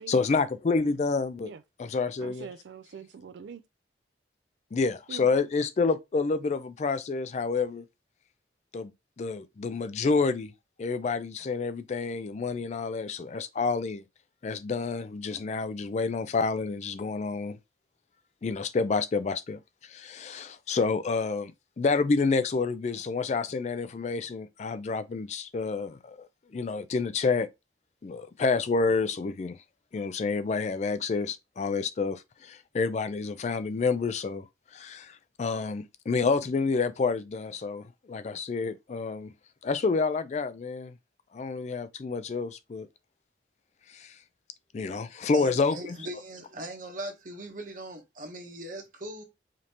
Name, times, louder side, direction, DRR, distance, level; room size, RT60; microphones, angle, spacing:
voice 1, 0.1-1.5 1.8-2.5 4.7-7.8 8.7-8.9 9.2-10.5 10.8-14.0 14.4-17.6 18.4-21.5 21.8-26.3 26.5-27.5 28.0-29.6 29.9-34.4 34.7-39.3 39.6-40.9 41.3-42.9 43.9-44.1 44.7-45.8, left 4 dB, 40° left, 0.3 m, -28 dB
voice 2, 2.2-3.6 5.1-5.5, right 6 dB, 70° right, 0.4 m, -44 dB
voice 3, 45.3-49.2, right 1 dB, 45° right, 1.1 m, -39 dB
5.0 x 2.7 x 2.9 m
head